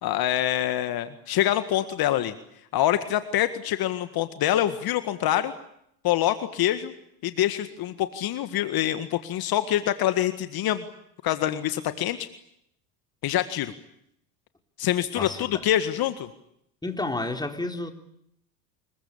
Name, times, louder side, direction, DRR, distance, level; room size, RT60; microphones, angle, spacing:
voice 1, 0.0-2.3 2.7-5.5 6.0-6.9 7.2-10.8 11.2-12.3 13.2-13.7 14.8-16.3, left 12 dB, 45° left, 10 dB, 1.9 m, -25 dB
voice 2, 15.2-15.6 16.8-17.9, left 2 dB, 10° left, 5 dB, 3.9 m, -31 dB
27.0 x 22.5 x 8.7 m, 0.75 s
hypercardioid pair, 85°, 48 cm